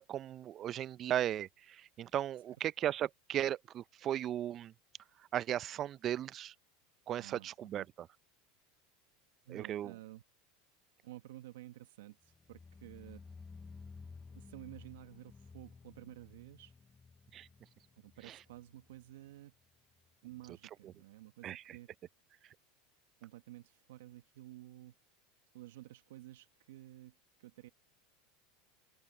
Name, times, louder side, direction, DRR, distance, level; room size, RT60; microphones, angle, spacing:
voice 1, 0.0-4.7 5.3-6.5 7.1-7.8 9.5-9.9 17.3-17.5 18.3-18.4 21.4-21.8, right 11 dB, 40° right, 0.5 m, -36 dB
voice 2, 7.1-7.9 9.4-10.2 11.0-13.2 14.3-16.8 18.0-19.5 20.2-21.9 23.2-24.9 25.5-27.7, right 15 dB, 80° right, 1.2 m, -52 dB
sound 1, 12.2-19.3 19.6-20.1 20.4-20.5, left 4 dB, 20° left, 0.7 m, -54 dB
open air
hypercardioid pair, 105°, 0 cm